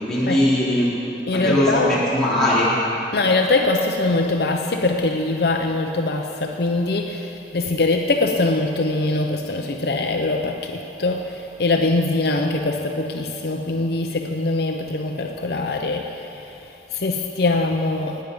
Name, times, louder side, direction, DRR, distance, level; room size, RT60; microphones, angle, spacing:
voice 1, 0.1-0.9 1.3-2.7, left 1 dB, 5° left, -10 dB, 3.6 m, -19 dB
voice 2, 1.3-1.9 3.1-18.2, left 2 dB, 55° left, 3 dB, 0.7 m, -22 dB
18.0 x 9.3 x 5.4 m, 3.0 s
head